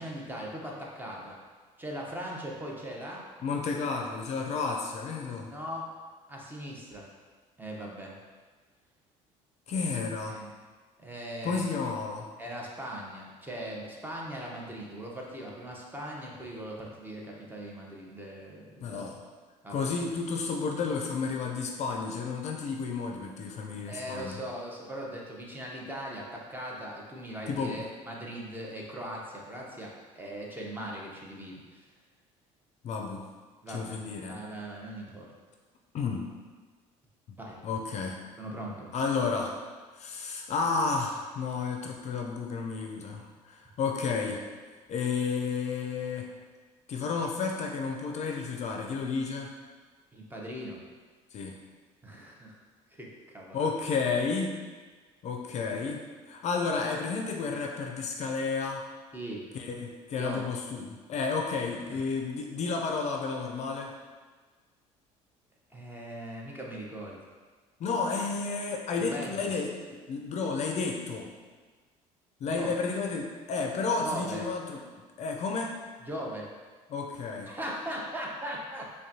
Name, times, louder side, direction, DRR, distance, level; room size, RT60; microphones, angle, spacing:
voice 1, 0.0-1.4 1.8-3.2 5.5-5.9 6.3-7.1 7.6-8.2 10.3-10.5 11.0-11.6 12.4-19.1 19.6-19.9 23.9-31.8 33.6-34.0 34.3-35.3 37.4-37.6 38.4-38.9 50.1-50.8 52.0-52.5 52.9-53.7 59.1-59.5 60.2-60.6 61.9-62.0 65.7-67.2 69.0-69.5 72.4-72.7 74.0-74.5 76.1-76.5 77.5-78.9, right 1 dB, 15° right, -2 dB, 0.8 m, -39 dB
voice 2, 3.4-5.5 9.7-10.4 11.4-12.3 18.8-19.2 19.7-24.3 27.5-27.8 32.8-33.3 33.7-34.4 35.9-36.3 37.6-38.2 38.9-39.6 39.9-44.4 44.9-46.3 46.9-49.5 51.3-51.6 53.5-54.6 55.2-58.9 59.5-63.9 67.8-71.3 72.4-74.8 75.2-75.8 76.9-77.5, left 4 dB, 50° left, 1 dB, 0.4 m, -32 dB
5.1 x 2.2 x 2.7 m, 1.4 s
supercardioid pair, 80°, 15 cm